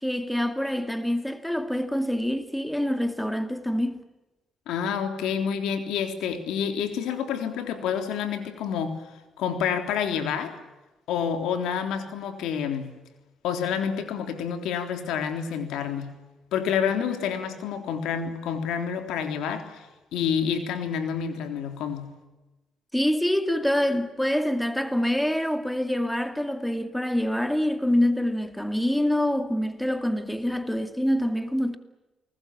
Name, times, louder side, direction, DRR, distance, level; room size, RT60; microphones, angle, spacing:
voice 1, 0.0-4.1 22.9-31.8, left 1 dB, 5° left, 2.2 m, -26 dB
voice 2, 4.7-9.0 9.4-10.5 11.1-12.9 13.4-16.1 16.5-19.9 20.1-22.1, left 7 dB, 90° left, 3.5 m, -28 dB
28.5 x 20.0 x 8.9 m
cardioid pair, 90°, 0 cm